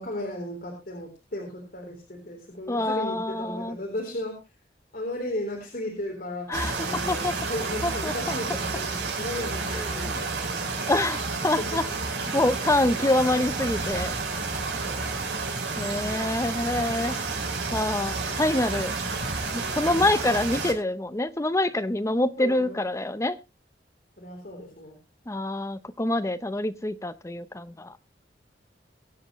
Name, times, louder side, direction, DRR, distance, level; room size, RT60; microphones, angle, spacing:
voice 1, 0.0-4.4 4.9-6.6 6.8-10.7 11.6-12.0 14.8-15.0 22.4-22.8 24.2-25.0, left 1 dB, 50° left, -1 dB, 3.7 m, -35 dB
voice 2, 2.7-3.8 6.5-7.3 7.8-8.4 9.7-10.2 10.9-11.9 12.3-14.2 15.8-17.2 17.7-18.9 19.7-23.4 25.3-27.9, left 1 dB, 15° left, 12 dB, 0.7 m, -26 dB
sound 1, 6.5-20.7, right 3 dB, 80° right, 5.6 m, -30 dB
23.0 x 7.9 x 3.1 m, 0.28 s
head